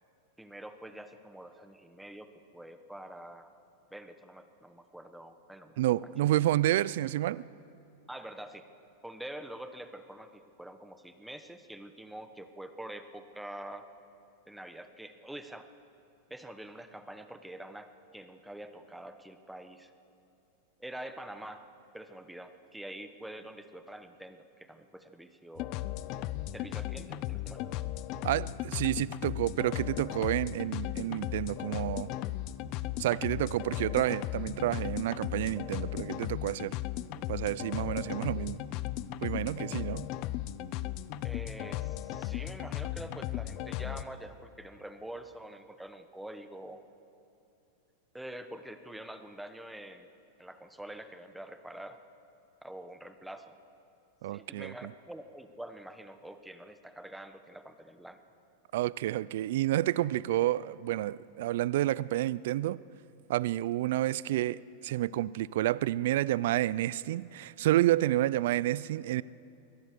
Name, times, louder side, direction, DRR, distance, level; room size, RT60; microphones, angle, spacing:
voice 1, 0.4-3.5 3.9-6.1 8.1-8.7 9.0-13.9 14.5-15.7 16.3-19.9 20.8-21.7 21.9-25.7 26.5-27.7 41.2-46.8 48.1-50.1 50.4-52.0 52.6-53.6 54.3-58.2, right 1 dB, 5° right, 9 dB, 1.2 m, -46 dB
voice 2, 5.8-7.4 28.2-32.1 33.0-36.8 37.3-38.6 39.2-40.1 54.2-54.9 58.7-62.8 63.3-69.2, right 14 dB, 70° right, 20 dB, 0.4 m, -29 dB
sound 1, 25.6-44.0, left 14 dB, 50° left, 0.7 m, -36 dB
23.0 x 17.5 x 6.8 m, 2.6 s
hypercardioid pair, 125°, 0 cm